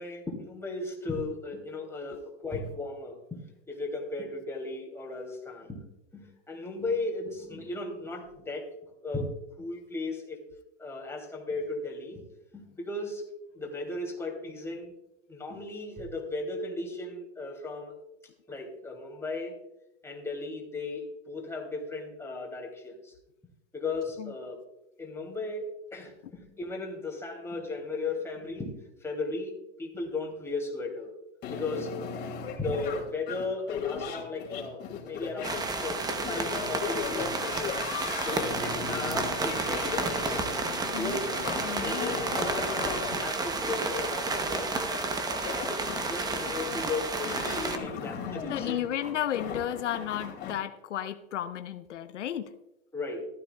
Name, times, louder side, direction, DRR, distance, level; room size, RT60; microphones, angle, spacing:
voice 1, 0.0-5.8 6.1-8.7 9.0-10.4 10.8-12.2 12.5-13.2 13.5-14.9 15.3-17.9 18.5-19.6 20.0-23.1 23.7-24.6 25.0-31.1 31.5-32.0 32.6-37.4 38.1-40.1 41.0-41.3 41.6-44.7 45.5-48.9 52.9-53.3, left 3 dB, 5° left, -1 dB, 2.9 m, -36 dB
sound 1, 31.4-50.5, left 6 dB, 30° left, 2.7 m, -38 dB
sound 2, 35.4-47.8, right 3 dB, 10° right, 0.9 m, -31 dB
voice 2, 48.5-52.5, left 11 dB, 90° left, 9 dB, 0.9 m, -33 dB
15.0 x 12.5 x 2.3 m, 0.89 s
hypercardioid pair, 130°, 35 cm